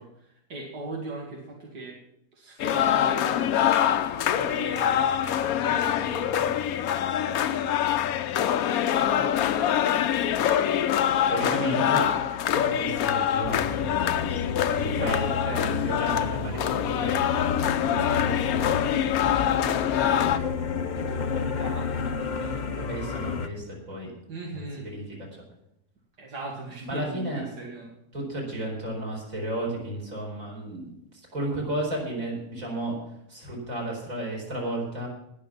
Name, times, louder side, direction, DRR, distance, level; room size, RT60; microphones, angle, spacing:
voice 1, 0.0-2.0 2.3-3.6 4.3-6.7 7.2-8.3 8.9-10.4 11.1-12.3 14.7-15.7 17.6-18.0 19.2-23.1 24.3-24.9 26.2-27.9, right 3 dB, 85° right, -1 dB, 2.6 m, -40 dB
sound 1, 2.6-20.4, left 10 dB, 70° left, 1.1 m, -25 dB
voice 2, 11.3-12.1 12.5-15.3 15.6-17.1 17.8-18.8 22.7-24.1 24.5-24.6 24.9-25.3 26.9-27.4 28.1-33.0 33.3-35.1, right 1 dB, 55° right, -1 dB, 5.0 m, -33 dB
sound 2, 13.4-23.5, left 5 dB, 40° left, 0.6 m, -31 dB
19.5 x 6.6 x 6.0 m, 0.79 s
omnidirectional pair, 1.7 m